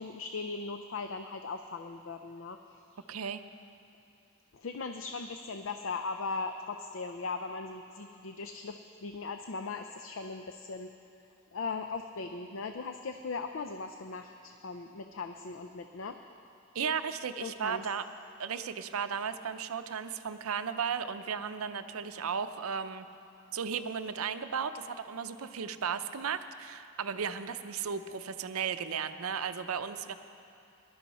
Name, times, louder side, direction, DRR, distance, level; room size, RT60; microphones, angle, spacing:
voice 1, 0.0-3.0 4.5-10.9 11.5-16.2 17.4-17.9, left 4 dB, 65° left, 7 dB, 0.5 m, -39 dB
voice 2, 3.1-3.4 16.7-18.0 18.4-23.1 23.5-30.1, right 6 dB, 90° right, 10 dB, 0.6 m, -35 dB
19.5 x 12.0 x 4.2 m, 2.6 s
head